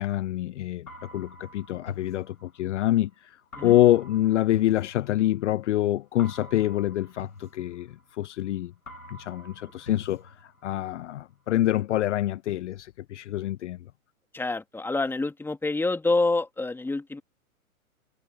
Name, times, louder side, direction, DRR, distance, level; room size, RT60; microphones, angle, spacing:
voice 1, 0.0-3.4 3.6-8.7 9.1-13.9, left 13 dB, 55° left, 0.8 m, -26 dB
sound 1, 0.9-2.9 3.5-5.6 6.2-8.5 8.9-10.9, left 3 dB, 85° left, 4.0 m, -45 dB
voice 2, 14.3-17.2, left 3 dB, 5° left, 2.4 m, -27 dB
figure-of-eight pair, 115°, 43 cm